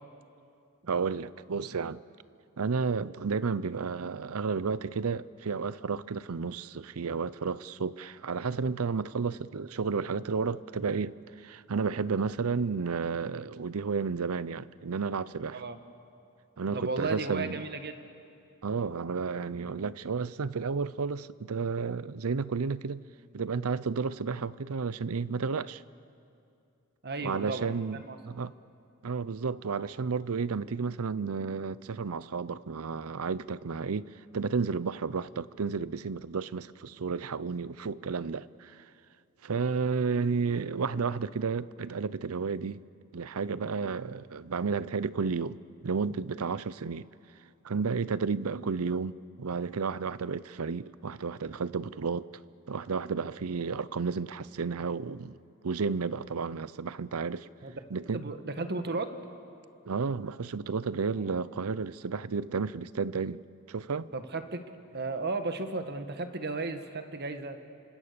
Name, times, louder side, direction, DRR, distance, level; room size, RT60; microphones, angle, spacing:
voice 1, 0.9-2.0 2.6-15.6 16.6-17.6 18.6-23.0 23.3-25.8 27.2-28.5 29.0-38.8 39.4-42.8 43.1-47.1 47.6-52.3 52.7-55.4 55.6-57.5 57.9-58.3 59.9-63.4 63.7-64.1, right 5 dB, 85° right, 0.6 m, -32 dB
voice 2, 16.7-18.0 27.0-28.2 57.6-57.8 58.1-59.1 64.1-64.6 64.9-67.6, right 3 dB, 50° right, 1.5 m, -34 dB
28.5 x 25.5 x 6.8 m
head